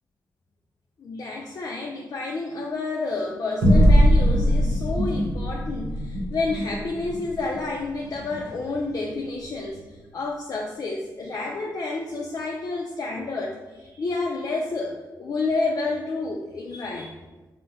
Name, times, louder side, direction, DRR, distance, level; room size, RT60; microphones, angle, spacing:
voice 1, 1.0-17.2, left 3 dB, 50° left, -1 dB, 0.4 m, -30 dB
sound 1, 3.6-8.4, equal, 90° right, 0.6 m, -21 dB
2.6 x 2.1 x 3.7 m, 1.2 s
supercardioid pair, 40°, 8 cm